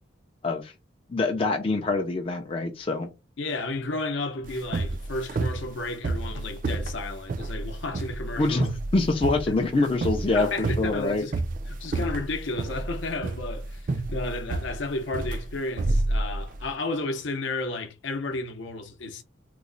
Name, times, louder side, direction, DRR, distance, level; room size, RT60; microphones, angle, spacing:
voice 1, 1.1-3.1 8.4-11.2, left 3 dB, 25° left, 0.4 m, -25 dB
voice 2, 3.4-8.7 10.3-11.3 11.7-19.2, left 2 dB, 65° left, 0.6 m, -32 dB
sound 1, 4.4-16.7, right 2 dB, 40° right, 0.3 m, -30 dB
3.0 x 2.0 x 3.8 m
head